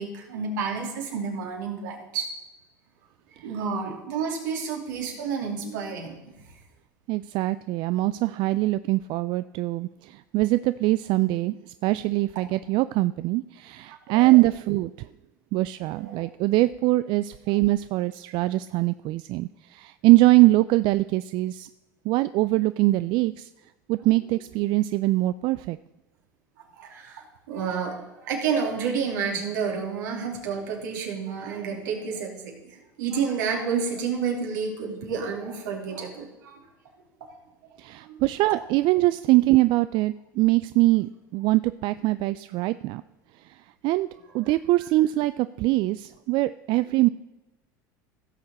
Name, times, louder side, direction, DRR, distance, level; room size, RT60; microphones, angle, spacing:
voice 1, 0.0-2.3 3.4-6.1 14.1-14.2 15.9-16.2 17.5-17.6 26.8-32.5 33.0-36.6 38.0-38.2, right 6 dB, 75° right, 0 dB, 2.7 m, -30 dB
voice 2, 7.1-15.1 15.5-21.7 22.1-23.5 23.9-25.8 37.8-43.0 43.4-43.6 43.8-44.1 44.3-47.1, right 18 dB, 55° right, 14 dB, 0.3 m, -23 dB
16.0 x 6.7 x 4.1 m, 1.0 s
hypercardioid pair, 90°, 10 cm